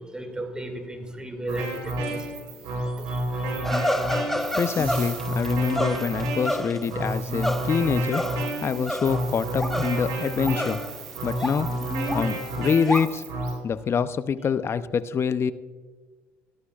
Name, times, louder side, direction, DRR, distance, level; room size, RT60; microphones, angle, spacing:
voice 1, 0.0-4.6 11.4-11.6 12.1-12.2, right 1 dB, 15° right, 5 dB, 2.3 m, -38 dB
sound 1, 1.5-13.5, right 1 dB, 80° right, 3.9 m, -30 dB
sound 2, 3.6-9.3 9.5-11.1 11.4-13.1, left 1 dB, 5° left, 1.0 m, -30 dB
voice 2, 4.4-8.2 8.6-10.8 11.2-11.7 12.1-13.2 13.6-15.5, left 6 dB, 40° left, 14 dB, 0.6 m, -26 dB
17.0 x 13.0 x 2.4 m, 1.4 s
supercardioid pair, 75°, 6 cm